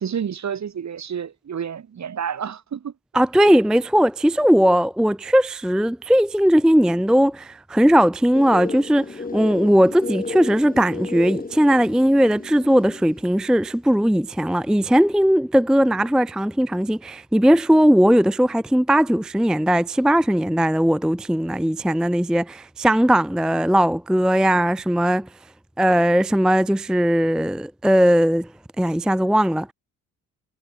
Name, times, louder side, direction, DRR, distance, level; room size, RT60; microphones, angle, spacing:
voice 1, 0.0-2.9, right 8 dB, 45° right, 2.8 m, -29 dB
voice 2, 3.1-25.3 25.8-28.5 28.8-29.7, equal, ahead, 0.5 m, -18 dB
sound 1, 8.3-13.3, left 4 dB, 20° left, 2.6 m, -33 dB
cardioid pair, 80°, 37 cm